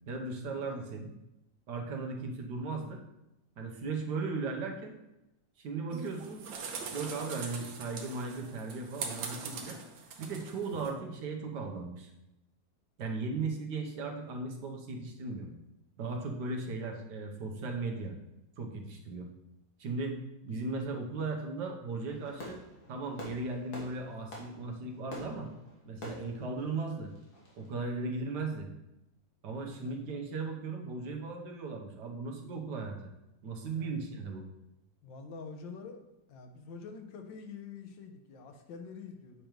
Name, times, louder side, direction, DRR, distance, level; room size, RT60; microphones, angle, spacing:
voice 1, 0.1-1.1 1.7-3.0 3.6-4.9 5.6-6.4 6.9-9.8 10.2-12.1 13.0-15.5 16.0-18.2 18.6-19.3 19.8-20.2 20.4-22.6 22.9-25.5 25.9-27.1 27.6-28.7 29.4-33.1 33.4-34.5, right 3 dB, 70° right, 2 dB, 1.5 m, -37 dB
sound 1, 5.9-10.9, right 5 dB, 90° right, 1.6 m, -42 dB
Fireworks, 22.1-27.7, left 1 dB, 60° left, 1.9 m, -48 dB
voice 2, 29.7-30.1 33.6-34.0 35.0-36.0 36.3-39.5, left 5 dB, 85° left, 6 dB, 1.5 m, -46 dB
7.7 x 5.1 x 3.0 m, 0.91 s
omnidirectional pair, 2.0 m